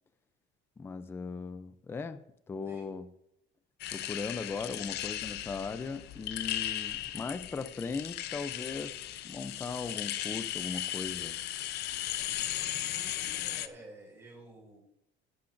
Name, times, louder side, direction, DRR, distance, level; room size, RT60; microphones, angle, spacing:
voice 1, 0.8-2.2 2.5-3.1 3.9-9.0 9.2-11.4, left 4 dB, 10° left, 11 dB, 0.4 m, -38 dB
sound 1, 3.8-13.7, left 13 dB, 55° left, 0.6 m, -36 dB
voice 2, 12.7-14.8, right 2 dB, 10° right, -2 dB, 4.9 m, -52 dB
16.0 x 11.5 x 2.6 m, 0.80 s
cardioid pair, 180°, 21 cm